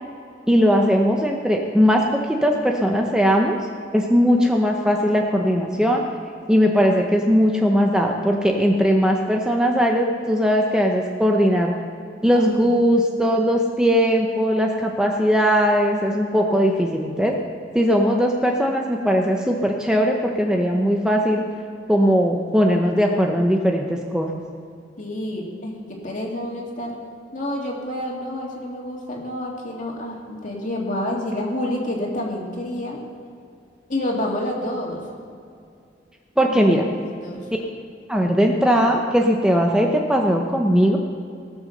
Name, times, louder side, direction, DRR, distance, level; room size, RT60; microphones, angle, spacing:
voice 1, 0.5-3.6 3.9-6.0 6.5-11.7 12.2-17.4 17.7-21.4 21.9-24.4 36.4-36.9 38.1-41.0, equal, 5° right, 1 dB, 0.8 m, -19 dB
voice 2, 25.0-27.0 27.3-33.0 33.9-35.0 36.4-37.5, left 1 dB, 45° left, -1 dB, 2.4 m, -29 dB
18.0 x 6.1 x 6.6 m, 2.4 s
head